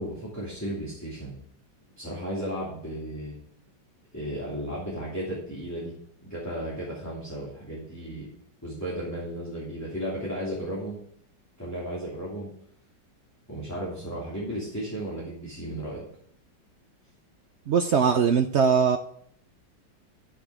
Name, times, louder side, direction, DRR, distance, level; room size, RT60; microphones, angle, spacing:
voice 1, 0.0-1.3 2.0-3.3 4.1-5.9 6.2-8.3 8.6-11.0 11.6-12.5 13.5-16.0, right 1 dB, 10° left, -6 dB, 2.7 m, -34 dB
voice 2, 17.7-19.0, right 6 dB, 75° right, 6 dB, 0.6 m, -21 dB
13.0 x 5.9 x 4.9 m, 0.64 s
omnidirectional pair, 1.9 m